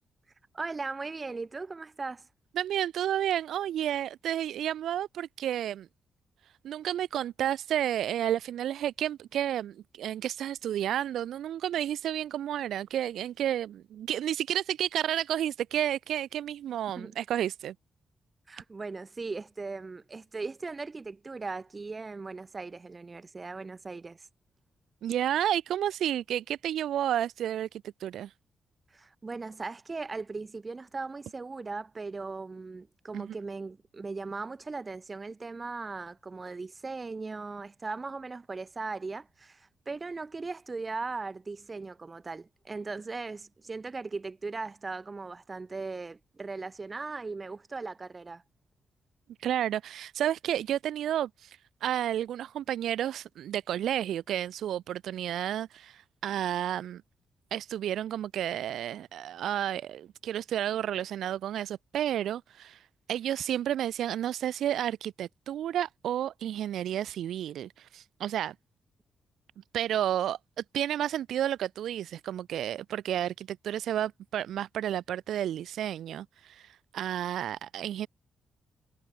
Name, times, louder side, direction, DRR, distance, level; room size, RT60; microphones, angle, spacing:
voice 1, 0.5-2.3 17.0-17.1 18.5-24.3 28.9-48.4, right 3 dB, 25° right, 1.3 m, -38 dB
voice 2, 2.6-5.9 6.6-17.7 25.0-28.3 33.1-33.4 49.4-57.0 57.5-62.8 63.1-68.5 69.7-70.4 70.7-78.1, right 11 dB, 90° right, 0.4 m, -31 dB
wide cardioid pair, 160°, 0 cm